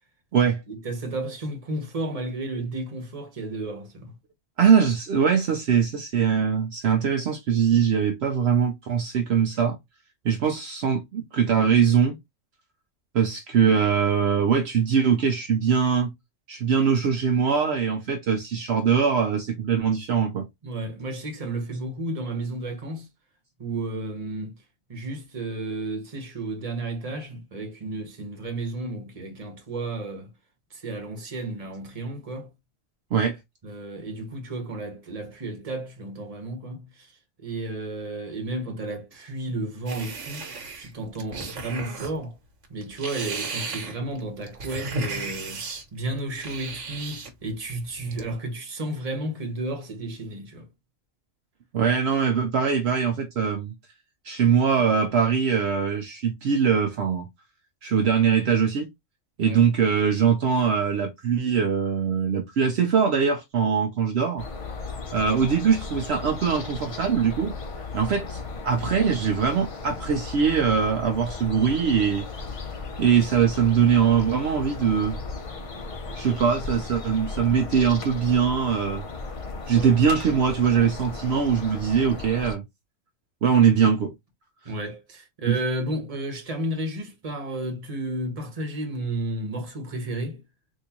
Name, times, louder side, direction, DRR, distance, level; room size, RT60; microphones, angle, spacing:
voice 1, 0.7-4.1 20.6-23.1 23.6-24.6 24.9-30.3 30.7-32.5 33.6-37.1 37.4-42.4 42.7-45.6 45.9-50.7 59.4-59.6 79.7-80.0 84.6-90.4, right 2 dB, 35° right, 1.0 m, -32 dB
voice 2, 4.6-9.8 10.2-12.2 13.1-16.1 16.5-20.5 33.1-33.4 51.7-53.7 54.2-57.3 57.8-58.9 59.4-64.5 65.1-67.5 67.9-72.3 73.0-75.2 76.1-79.0 79.7-82.6 83.4-84.1 85.5-85.6, right 7 dB, 70° right, 0.8 m, -22 dB
sound 1, 39.9-42.2 42.6-45.8 46.3-47.3 47.7-48.3, right 3 dB, 85° right, 1.3 m, -34 dB
sound 2, 64.4-82.6, left 3 dB, 45° left, 0.4 m, -36 dB
3.7 x 2.6 x 2.8 m
omnidirectional pair, 1.2 m